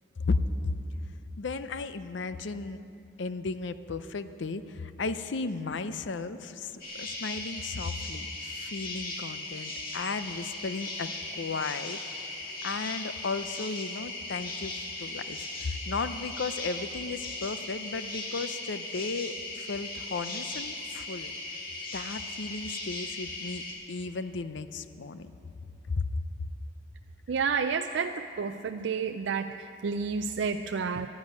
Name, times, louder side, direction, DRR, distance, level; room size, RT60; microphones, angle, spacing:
voice 1, 1.4-2.8 3.2-12.0 12.6-14.7 15.0-21.3 21.9-25.3 25.9-26.0, left 4 dB, 70° left, 12 dB, 0.6 m, -35 dB
sound 1, 6.8-23.7, left 2 dB, 45° left, 2.4 m, -38 dB
voice 2, 27.3-31.1, right 5 dB, 70° right, 7 dB, 0.4 m, -30 dB
12.0 x 10.5 x 9.4 m, 2.8 s
head